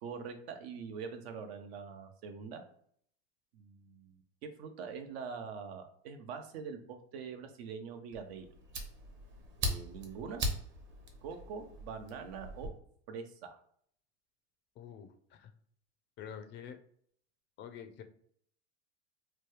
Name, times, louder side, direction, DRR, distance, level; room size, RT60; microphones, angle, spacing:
voice 1, 0.0-2.6 3.5-8.5 9.6-10.5 11.2-12.7 13.1-13.6, right 6 dB, 70° right, 7 dB, 0.7 m, -44 dB
Fire, 8.1-12.7, right 1 dB, 35° right, 0.9 m, -40 dB
voice 2, 14.8-15.5 16.2-16.8 17.6-18.0, left 8 dB, 35° left, 7 dB, 0.5 m, -47 dB
3.0 x 2.2 x 3.2 m, 0.63 s
supercardioid pair, 110°, 33 cm